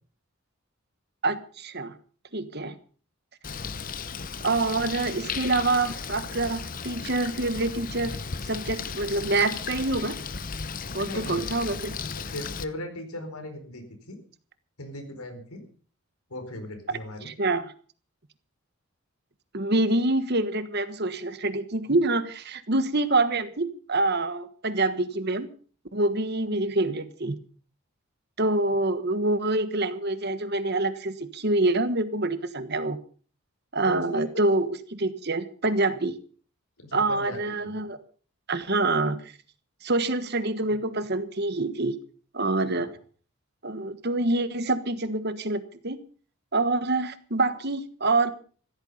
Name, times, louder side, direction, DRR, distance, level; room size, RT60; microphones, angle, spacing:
voice 1, 1.2-1.9 2.3-2.7 4.4-8.2 8.5-10.2 10.9-11.9 17.2-17.7 19.5-25.5 25.9-27.3 28.4-33.0 33.7-36.2 36.9-38.0 38.5-39.2 39.8-42.0 42.3-42.9 43.6-46.0 46.5-48.3, right 2 dB, 45° right, 12 dB, 1.4 m, -26 dB
Bird, 3.4-12.6, left 5 dB, 40° left, 0.8 m, -35 dB
voice 2, 3.5-4.0 11.0-11.7 12.1-14.2 14.8-15.6 16.3-17.3 33.8-34.4 36.8-37.8 42.7-42.9, left 1 dB, 85° left, 6 dB, 4.6 m, -39 dB
15.0 x 14.0 x 5.5 m, 0.43 s
head